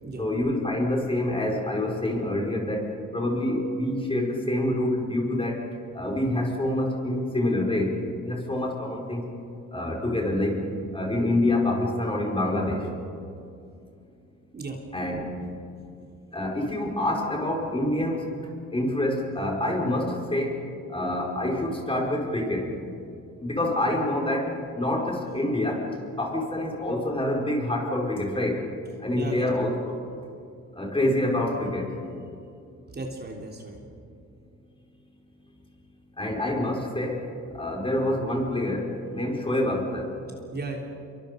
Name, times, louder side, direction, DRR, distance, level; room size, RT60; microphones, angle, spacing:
voice 1, 0.2-5.6 5.9-9.2 9.7-10.6 10.9-12.9 14.9-15.3 16.3-18.3 18.7-20.6 20.9-22.7 23.4-25.9 26.2-28.6 29.0-29.9 30.7-31.9 36.2-37.3 37.5-40.1, left 1 dB, 20° left, 0 dB, 5.1 m, -26 dB
voice 2, 29.1-29.5 32.9-33.8 40.5-40.8, right 3 dB, 35° right, 0 dB, 3.5 m, -35 dB
26.5 x 23.5 x 5.3 m, 2.6 s
cardioid pair, 90°, 30 cm